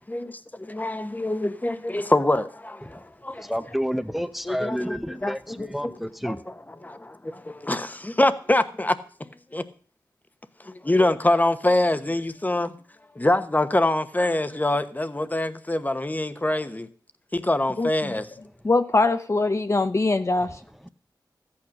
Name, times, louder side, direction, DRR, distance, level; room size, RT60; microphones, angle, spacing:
voice 1, 0.1-3.5 4.4-9.6 10.6-12.7 13.1-16.9 17.3-18.3, left 1 dB, 20° left, 1.1 m, -25 dB
voice 2, 3.4-6.4, equal, ahead, 0.8 m, -29 dB
voice 3, 17.8-18.2 18.6-20.6, left 3 dB, 40° left, 0.7 m, -22 dB
14.0 x 8.7 x 6.5 m
wide cardioid pair, 60°, 8 cm